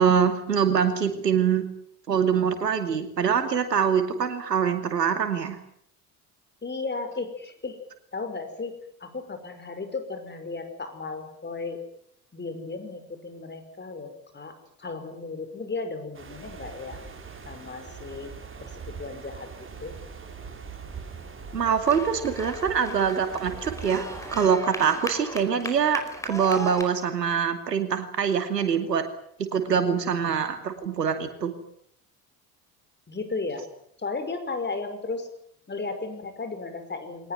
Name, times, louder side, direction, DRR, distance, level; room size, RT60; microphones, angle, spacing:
voice 1, 0.0-1.6 2.1-5.6 21.5-24.0 24.3-29.0 29.4-31.5, right 7 dB, 80° right, 9 dB, 2.6 m, -24 dB
voice 2, 6.6-7.8 8.1-11.8 12.3-14.5 14.8-17.0 17.5-18.3 18.6-18.7 19.0-19.5 19.8-19.9 33.1-33.6 34.0-35.3 35.7-37.3, left 3 dB, 20° left, 8 dB, 5.5 m, -34 dB
sound 1, 16.1-24.4, right 5 dB, 25° right, 5.4 m, -42 dB
sound 2, 21.8-26.8, equal, 5° left, 4.9 m, -38 dB
22.0 x 19.0 x 9.8 m, 0.68 s
figure-of-eight pair, 60°, 48 cm